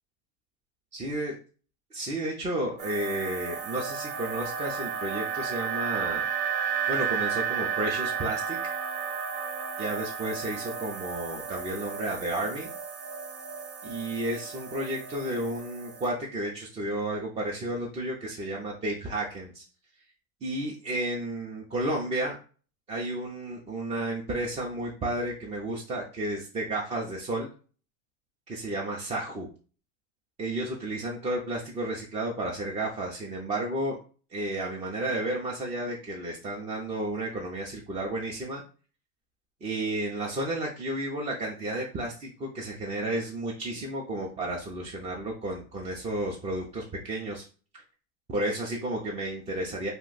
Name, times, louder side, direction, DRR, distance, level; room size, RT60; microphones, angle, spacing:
voice 1, 0.9-1.3 1.9-6.2 6.9-8.6 9.8-12.7 13.8-19.6 20.4-22.4 22.9-27.5 28.5-29.5 30.4-34.0 34.3-38.6 39.6-47.4 48.3-49.9, right 1 dB, 15° right, -3 dB, 0.4 m, -32 dB
sound 1, 2.8-16.1, right 7 dB, 80° right, 1.0 m, -33 dB
2.6 x 2.1 x 3.8 m, 0.38 s
supercardioid pair, 115°, 42 cm